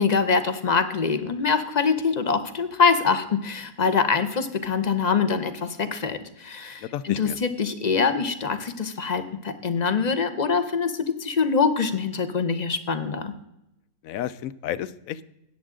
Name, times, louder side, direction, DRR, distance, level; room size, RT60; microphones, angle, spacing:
voice 1, 0.0-13.3, left 5 dB, 40° left, 10 dB, 0.7 m, -24 dB
voice 2, 6.8-7.4 14.0-15.3, left 11 dB, 70° left, 16 dB, 1.0 m, -32 dB
13.5 x 9.0 x 3.7 m, 0.85 s
omnidirectional pair, 1.6 m